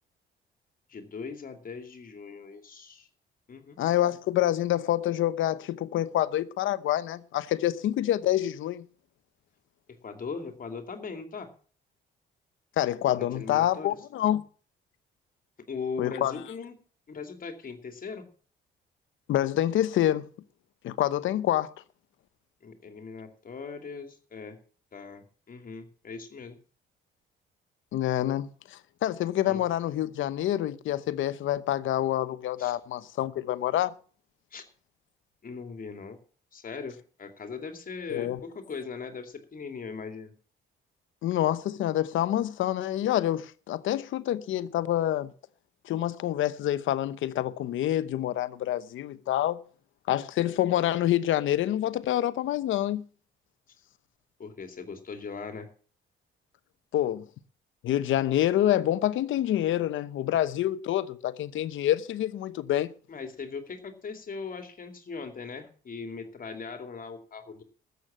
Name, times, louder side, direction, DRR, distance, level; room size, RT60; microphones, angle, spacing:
voice 1, 0.9-3.1 3.5-3.8 10.0-11.5 13.1-14.0 15.7-16.7 17.1-18.3 22.6-24.6 24.9-26.6 29.4-29.6 32.6-32.8 34.5-34.6 35.4-36.2 36.5-40.3 54.4-55.7 63.1-67.6, left 5 dB, 45° left, 2.8 m, -39 dB
voice 2, 3.8-8.9 12.8-14.4 16.0-16.3 19.3-20.3 20.8-21.7 27.9-33.9 38.1-38.4 41.2-45.3 45.8-49.6 50.1-53.0 56.9-57.2 57.8-62.9, left 12 dB, 80° left, 1.0 m, -27 dB
13.5 x 8.2 x 7.4 m
cardioid pair, 90°, 20 cm